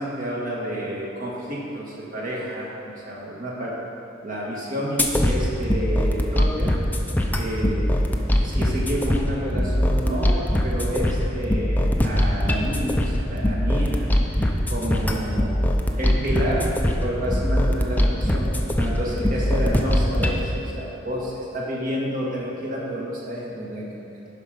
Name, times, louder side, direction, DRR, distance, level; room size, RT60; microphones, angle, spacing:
voice 1, 0.0-2.8 3.0-3.8 4.2-6.7 7.3-14.1 14.7-15.6 16.0-18.5 18.8-24.1, equal, 45° right, -4 dB, 1.9 m, -29 dB
sound 1, 5.0-20.4, equal, 10° left, 0.6 m, -22 dB
12.0 x 5.0 x 5.3 m, 2.7 s
head